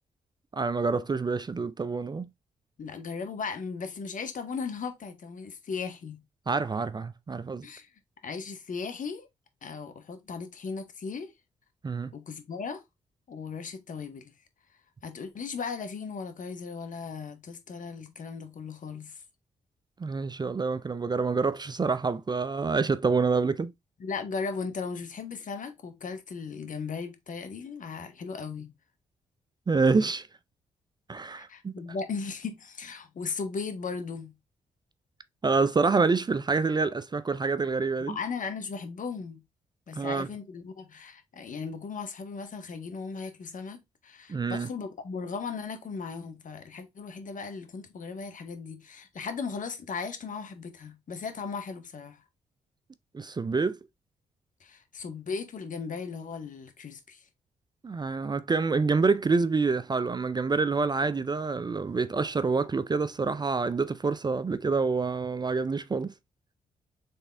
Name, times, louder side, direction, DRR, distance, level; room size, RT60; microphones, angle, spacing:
voice 1, 0.5-2.3 6.5-7.7 11.8-12.1 20.0-23.7 29.7-30.3 31.1-31.7 35.4-38.2 39.9-40.3 44.3-44.7 53.1-53.8 57.8-66.1, right 4 dB, 25° right, 0.4 m, -27 dB
voice 2, 2.8-6.2 7.6-7.9 8.2-9.3 9.6-11.3 12.1-12.8 13.3-14.3 15.0-19.2 24.0-28.7 31.4-34.3 38.1-39.4 39.9-52.2 54.6-57.3, left 5 dB, 55° left, 1.1 m, -37 dB
4.1 x 3.5 x 3.3 m
hypercardioid pair, 45°, 16 cm